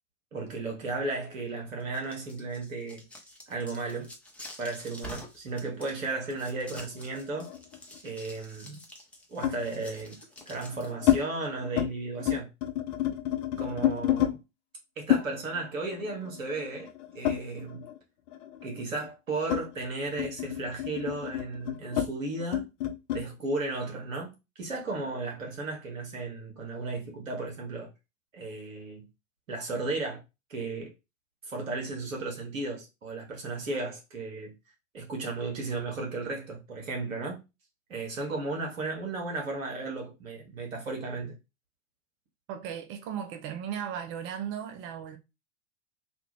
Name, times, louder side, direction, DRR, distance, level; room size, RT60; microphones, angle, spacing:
voice 1, 0.3-3.0 3.5-4.1 4.6-7.5 8.0-8.8 9.3-10.2 10.5-12.5 13.6-14.4 15.0-17.9 18.6-22.7 23.1-27.9 28.3-29.0 29.5-30.2 30.5-30.9 31.4-34.5 34.9-37.4 37.9-41.4, right 3 dB, 80° right, 1.5 m, -35 dB
sound 1, 1.8-11.2, left 1 dB, 5° left, 0.8 m, -48 dB
sound 2, 6.6-8.1 9.4-9.7 10.4-11.2 11.6-11.9 12.2-14.3 15.1-18.0 18.3-23.3, left 12 dB, 40° left, 0.7 m, -30 dB
voice 2, 42.5-45.2, right 8 dB, 30° right, 0.5 m, -36 dB
3.3 x 2.4 x 3.0 m
hypercardioid pair, 95°, 39 cm